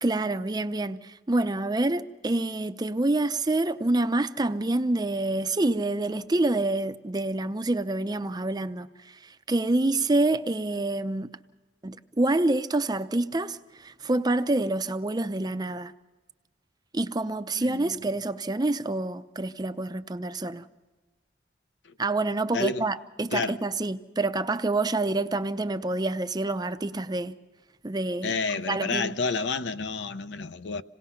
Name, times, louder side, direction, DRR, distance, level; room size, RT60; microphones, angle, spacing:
voice 1, 0.0-11.3 11.8-15.9 16.9-20.7 22.0-27.4 27.8-28.4 28.7-29.2, right 2 dB, 20° right, 0.6 m, -27 dB
voice 2, 17.6-18.0 22.5-22.9 23.3-23.6 28.2-30.8, left 4 dB, 65° left, 0.7 m, -30 dB
27.0 x 18.5 x 5.7 m
head